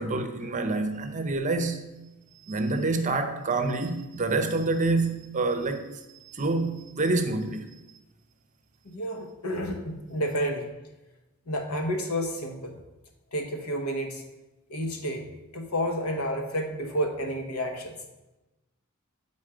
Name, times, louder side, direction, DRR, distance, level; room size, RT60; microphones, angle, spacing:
voice 1, 0.0-1.8 2.5-7.8, right 3 dB, 35° right, 7 dB, 0.7 m, -27 dB
voice 2, 8.8-10.7 11.5-12.8 13.3-14.2 14.7-18.0, equal, 80° left, 3 dB, 1.2 m, -30 dB
8.8 x 4.1 x 4.9 m, 1.0 s
head